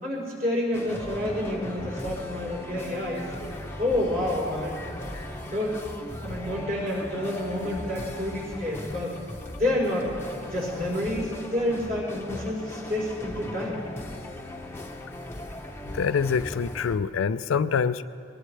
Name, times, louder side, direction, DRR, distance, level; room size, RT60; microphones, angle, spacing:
voice 1, 0.0-3.4 3.8-4.8 5.4-5.8 6.2-9.2 9.5-10.2 10.5-13.8, left 1 dB, 45° right, -5 dB, 4.2 m, -29 dB
sound 1, 0.7-17.0, left 1 dB, 10° left, 0.9 m, -38 dB
voice 2, 15.8-18.0, left 6 dB, 80° left, 13 dB, 0.4 m, -25 dB
23.0 x 19.0 x 3.3 m, 2.4 s
head